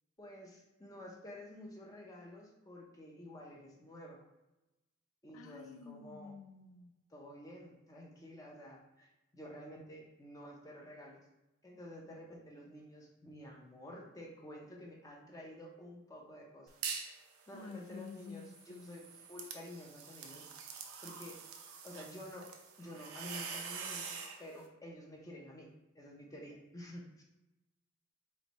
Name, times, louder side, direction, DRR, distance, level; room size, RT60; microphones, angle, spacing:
voice 1, 0.2-4.2 5.2-6.3 7.1-11.2 11.6-16.7 17.5-20.5 21.0-21.4 21.8-22.5 22.8-27.2, left 1 dB, 15° left, -1 dB, 0.5 m, -50 dB
voice 2, 5.3-6.9 17.5-19.0, left 5 dB, 85° left, 10 dB, 0.3 m, -50 dB
sound 1, 16.7-17.2 17.6-24.4, right 6 dB, 90° right, 0.6 m, -45 dB
3.2 x 3.0 x 4.0 m, 0.99 s
head